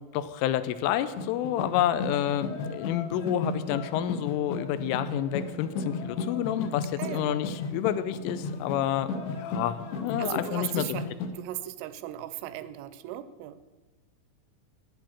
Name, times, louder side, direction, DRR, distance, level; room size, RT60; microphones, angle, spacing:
voice 1, 0.1-11.0, left 11 dB, 85° left, 13 dB, 3.2 m, -29 dB
sound 1, 1.2-11.3, left 4 dB, 70° left, 2.9 m, -35 dB
voice 2, 10.2-11.0 11.3-13.6, right 13 dB, 85° right, 13 dB, 3.1 m, -37 dB
10.5 x 10.0 x 7.2 m, 1.3 s
omnidirectional pair, 5.7 m